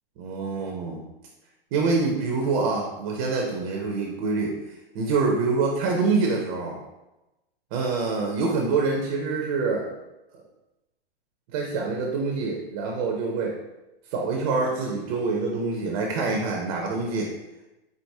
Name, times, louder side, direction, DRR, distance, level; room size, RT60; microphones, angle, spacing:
voice 1, 0.2-1.0 1.7-4.5 4.9-6.8 7.7-9.9 11.5-13.6 14.1-17.3, right 4 dB, 30° right, 0 dB, 0.6 m, -26 dB
4.7 x 4.0 x 2.7 m, 1.0 s
hypercardioid pair, 145°, 30 cm